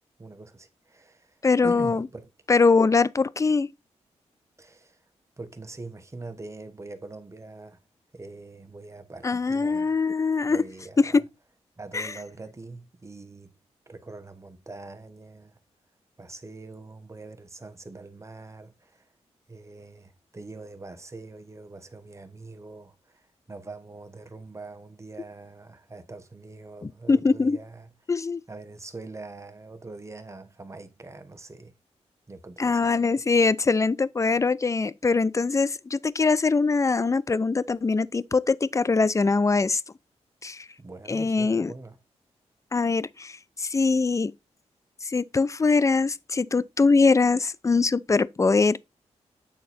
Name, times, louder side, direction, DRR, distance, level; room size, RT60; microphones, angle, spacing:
voice 1, 0.2-1.4 1.6-2.3 4.6-5.0 5.4-7.8 8.1-10.0 10.4-11.2 11.8-13.5 13.9-15.6 16.2-19.1 19.5-27.9 28.5-31.7 32.3-32.9 40.8-42.0, right 3 dB, 25° right, 1.3 m, -43 dB
voice 2, 1.4-2.1 2.5-3.7 9.2-10.6 11.0-11.2 11.9-12.1 26.8-27.6 28.1-28.4 32.6-39.8 40.4-40.7 41.1-41.7 42.7-44.3 45.0-48.8, left 4 dB, 25° left, 0.5 m, -22 dB
8.7 x 4.0 x 4.2 m
cardioid pair, 80°, 12 cm